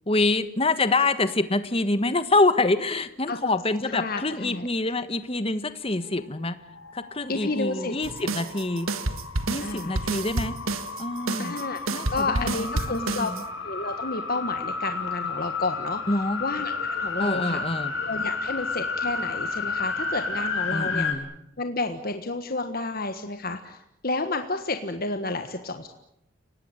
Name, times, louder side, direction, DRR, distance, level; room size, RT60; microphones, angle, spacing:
voice 1, 0.1-6.6 6.9-8.9 9.5-10.6 11.0-11.5 11.9-13.4 16.1-16.4 17.2-17.9 20.7-21.3, left 2 dB, 25° left, 12 dB, 1.4 m, -26 dB
voice 2, 3.8-4.7 7.3-7.9 9.6-10.1 11.4-13.3 13.6-16.0 16.4-17.6 18.0-21.1 21.6-25.9, left 3 dB, 45° left, 7 dB, 1.5 m, -31 dB
sound 1, 6.7-21.1, left 4 dB, 70° left, 4.4 m, -32 dB
sound 2, 8.0-13.4, right 2 dB, 85° right, 1.6 m, -30 dB
30.0 x 18.5 x 9.0 m, 0.81 s
head